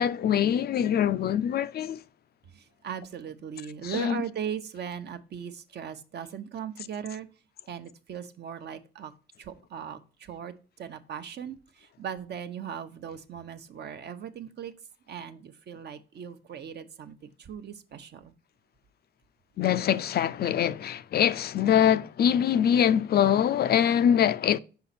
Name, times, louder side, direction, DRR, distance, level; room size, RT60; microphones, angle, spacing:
voice 1, 0.0-2.0 3.8-4.2 19.6-24.6, left 9 dB, 55° left, 0.4 m, -24 dB
voice 2, 2.5-7.3 7.7-9.1 9.4-14.7 15.1-18.3, right 8 dB, 55° right, 0.8 m, -38 dB
5.7 x 5.0 x 4.1 m
cardioid pair, 90°, 20 cm